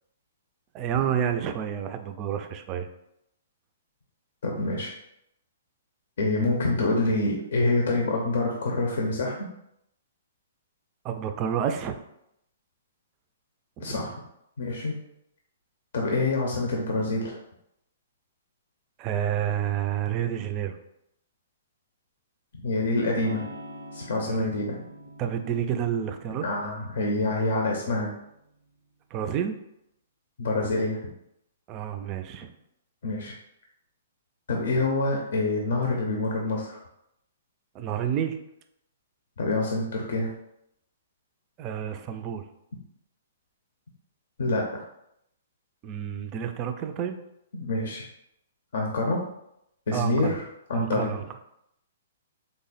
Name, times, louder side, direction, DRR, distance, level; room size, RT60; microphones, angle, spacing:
voice 1, 0.7-2.9 11.0-12.0 13.8-14.0 19.0-20.8 24.3-24.5 25.2-26.4 29.1-29.6 31.7-32.5 37.7-38.4 41.6-42.4 45.8-47.2 49.9-50.4 50.7-51.3, right 9 dB, 30° right, 8 dB, 0.3 m, -29 dB
voice 2, 4.4-4.9 6.2-9.4 13.8-14.2 14.6-14.9 15.9-17.4 22.6-23.4 23.9-24.8 26.4-28.1 30.4-31.0 33.0-33.3 34.5-36.8 39.4-40.3 44.4-44.8 47.5-48.0 48.7-49.2 49.9-50.4 50.7-51.2, left 2 dB, 70° left, -1 dB, 0.6 m, -26 dB
Electric guitar / Strum, 23.1-28.8, equal, 90° right, 0.6 m, -46 dB
3.4 x 2.1 x 4.0 m, 0.79 s
hypercardioid pair, 140°, 0 cm